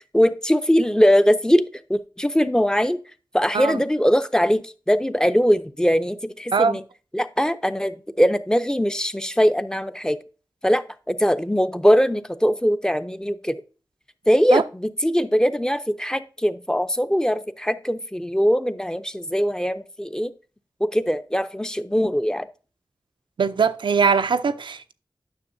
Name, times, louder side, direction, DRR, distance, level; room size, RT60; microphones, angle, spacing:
voice 1, 0.1-3.0 3.3-6.8 7.1-10.2 10.6-10.8 11.1-13.6 14.3-20.3 20.8-22.5, equal, 10° left, 0.5 m, -21 dB
voice 2, 23.4-24.9, right 5 dB, 85° right, 0.4 m, -21 dB
9.6 x 6.2 x 2.6 m
wide cardioid pair, 70°, 8 cm